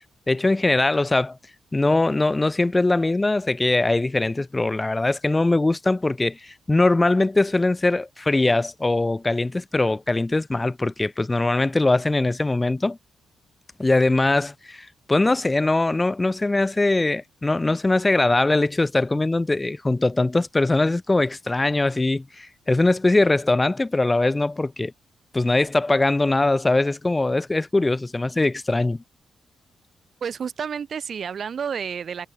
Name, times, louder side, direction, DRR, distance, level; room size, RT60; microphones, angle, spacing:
voice 1, 0.3-1.4 1.7-13.0 13.8-24.9 25.3-29.0, left 2 dB, 20° left, 0.8 m, -21 dB
voice 2, 30.2-32.3, right 7 dB, 60° right, 3.5 m, -30 dB
cardioid pair, 80°, 0 cm